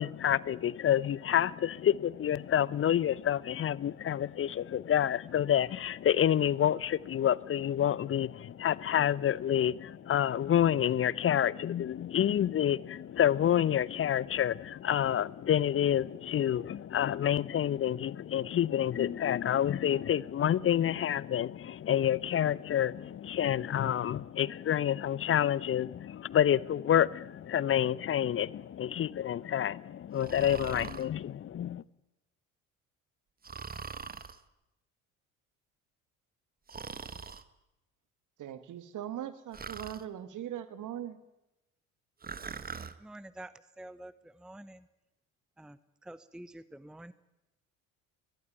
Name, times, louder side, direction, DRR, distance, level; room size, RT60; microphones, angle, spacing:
voice 1, 0.0-31.8, left 10 dB, 30° left, 0.8 m, -28 dB
Breathing, 30.2-31.1 33.4-34.4 36.7-37.4 39.5-40.0 42.2-42.9, right 5 dB, 20° right, 1.4 m, -42 dB
voice 2, 38.4-41.2, right 11 dB, 50° right, 2.2 m, -40 dB
voice 3, 43.0-44.9 45.6-47.1, right 1 dB, ahead, 1.0 m, -48 dB
21.5 x 21.0 x 9.1 m
figure-of-eight pair, 55°, 41 cm